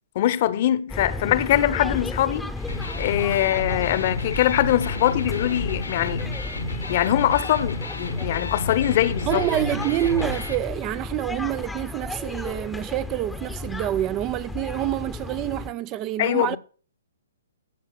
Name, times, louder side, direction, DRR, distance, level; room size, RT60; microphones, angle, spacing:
voice 1, 0.1-2.5 3.0-6.4 6.9-9.5 16.2-16.6, left 12 dB, 45° left, 0.9 m, -22 dB
sound 1, 0.9-15.7, left 2 dB, 5° left, 0.9 m, -34 dB
Electric guitar, 2.6-10.6, left 2 dB, 90° left, 1.6 m, -31 dB
voice 2, 9.3-16.6, right 13 dB, 30° right, 0.4 m, -27 dB
15.5 x 5.7 x 6.3 m
figure-of-eight pair, 125°, 0 cm